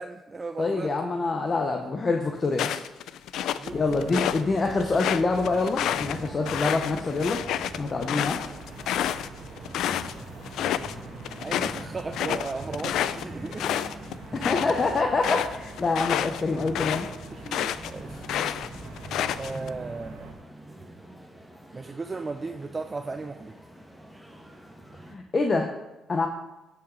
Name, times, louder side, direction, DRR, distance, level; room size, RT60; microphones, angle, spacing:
voice 1, 0.0-0.9 3.6-5.3 7.3-7.4 10.8-13.9 17.3-18.5 19.4-20.3 21.7-23.5, right 3 dB, 30° right, 7 dB, 0.5 m, -37 dB
voice 2, 0.6-2.8 3.7-7.4 7.8-8.4 14.3-17.1 25.1-25.7 26.1-26.3, left 3 dB, 35° left, 3 dB, 0.9 m, -26 dB
sound 1, 2.5-4.4 4.8-10.1 10.4-10.9 11.2-17.9 18.2-19.7, left 10 dB, 80° left, 0.4 m, -29 dB
sound 2, 3.6-20.3, right 3 dB, 80° right, 1.9 m, -44 dB
sound 3, 5.8-25.1, right 1 dB, ahead, 1.7 m, -44 dB
15.5 x 5.9 x 3.9 m, 1.0 s
cardioid pair, 90°, 0 cm